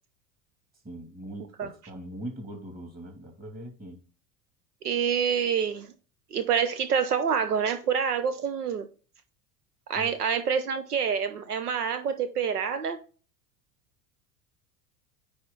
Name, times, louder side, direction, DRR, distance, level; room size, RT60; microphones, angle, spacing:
voice 1, 0.8-4.0 9.9-10.2, right 1 dB, 20° right, 2.4 m, -41 dB
voice 2, 4.8-5.9 6.3-8.9 9.9-13.0, right 7 dB, 80° right, 0.8 m, -27 dB
9.5 x 3.3 x 3.9 m
figure-of-eight pair, 75°, 45 cm